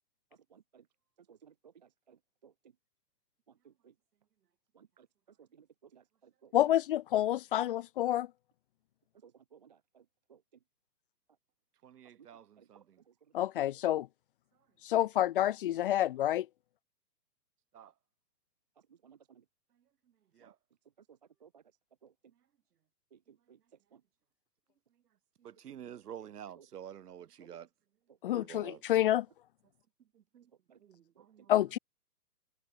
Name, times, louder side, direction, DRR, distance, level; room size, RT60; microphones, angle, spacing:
voice 1, 0.5-0.8 1.3-1.5 2.1-2.2 2.4-2.5 4.8-5.1 5.9-6.0 6.4-6.5 9.2-9.8 10.3-10.4 12.6-12.8 19.0-19.2 20.4-20.5 22.0-22.1 23.5-23.6 30.7-30.8, right 7 dB, 30° right, 0.4 m, -59 dB
voice 2, 6.5-8.3 13.3-14.1 14.8-16.5 28.2-29.3 31.5-31.8, left 13 dB, 35° left, 0.8 m, -28 dB
voice 3, 11.8-13.0 17.7-17.9 20.3-20.6 25.4-27.7 28.3-28.8 30.1-30.5 30.8-31.5, right 9 dB, 65° right, 1.8 m, -49 dB
hypercardioid pair, 145°, 49 cm